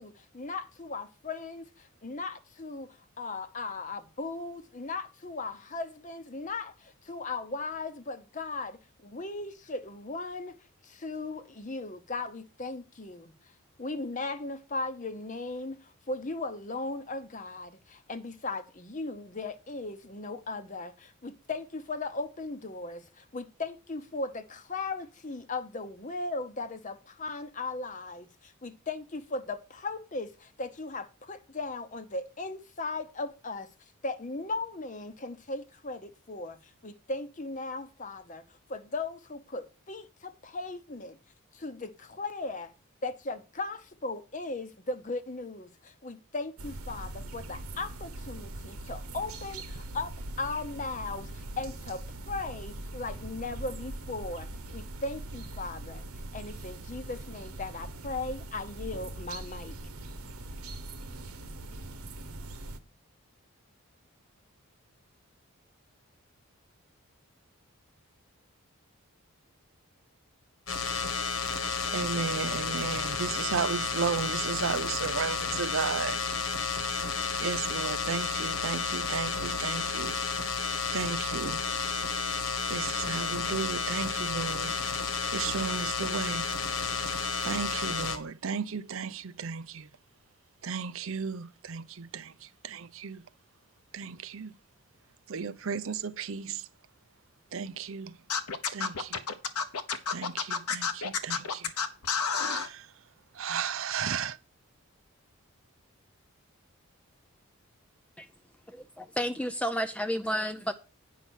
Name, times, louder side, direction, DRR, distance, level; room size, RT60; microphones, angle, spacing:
voice 1, 0.0-10.6 10.8-13.3 13.8-33.7 34.0-38.4 38.7-41.2 41.5-42.7 43.0-56.1 56.3-59.7, left 3 dB, 35° left, 0.8 m, -37 dB
sound 1, 46.6-62.8, right 2 dB, 85° right, 1.1 m, -41 dB
sound 2, 70.7-88.2, left 5 dB, 70° left, 1.5 m, -31 dB
voice 2, 71.9-76.2 77.4-80.2 80.9-81.6 82.7-84.7 85.3-86.5 87.4-89.9 90.6-93.2 93.9-94.5 95.3-96.6 97.5-98.1 98.7-99.2 100.1-101.7 102.4-102.9 103.3-104.4, right 6 dB, 65° right, 0.6 m, -34 dB
Scratching (performance technique), 98.3-102.7, left 6 dB, 85° left, 1.0 m, -30 dB
voice 3, 108.7-110.7, equal, 5° left, 0.5 m, -31 dB
9.3 x 5.7 x 6.2 m
head